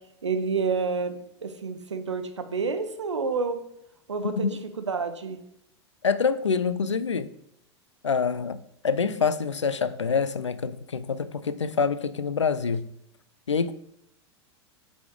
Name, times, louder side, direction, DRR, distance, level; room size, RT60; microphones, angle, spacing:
voice 1, 0.2-1.2 1.4-3.6 4.1-4.5 4.8-5.4, right 4 dB, 80° right, 0.8 m, -28 dB
voice 2, 4.2-4.6 6.0-7.3 8.0-12.9 13.5-13.7, left 5 dB, 85° left, 0.4 m, -26 dB
7.3 x 4.2 x 4.7 m
figure-of-eight pair, 90°, 15 cm